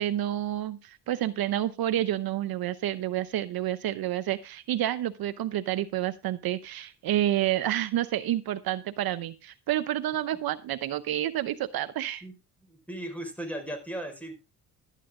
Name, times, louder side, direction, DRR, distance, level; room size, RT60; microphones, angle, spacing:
voice 1, 0.0-12.2, right 12 dB, 60° right, 12 dB, 0.8 m, -29 dB
voice 2, 12.6-14.3, right 1 dB, 5° left, 5 dB, 5.1 m, -37 dB
12.5 x 10.0 x 3.7 m, 0.28 s
cardioid pair, 95°, 41 cm